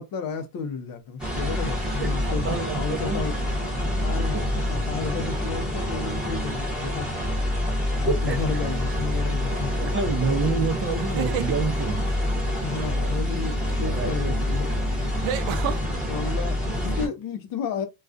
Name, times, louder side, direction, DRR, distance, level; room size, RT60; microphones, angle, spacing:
voice 1, 0.0-3.3 4.0-7.3 8.0-9.7 12.6-14.7 16.1-17.8, left 5 dB, 50° left, 0.6 m, -32 dB
sound 1, 1.2-17.1, left 1 dB, ahead, 1.0 m, -27 dB
voice 2, 2.0-3.3 4.3-4.6 8.1-8.4 9.8-12.1 13.0-13.1 13.8-14.4, right 4 dB, 30° right, 0.5 m, -28 dB
sound 2, 8.4-8.8 10.9-11.6 13.9-14.0 15.2-15.8, right 10 dB, 70° right, 0.6 m, -30 dB
2.4 x 2.3 x 2.4 m
cardioid pair, 130°, 46 cm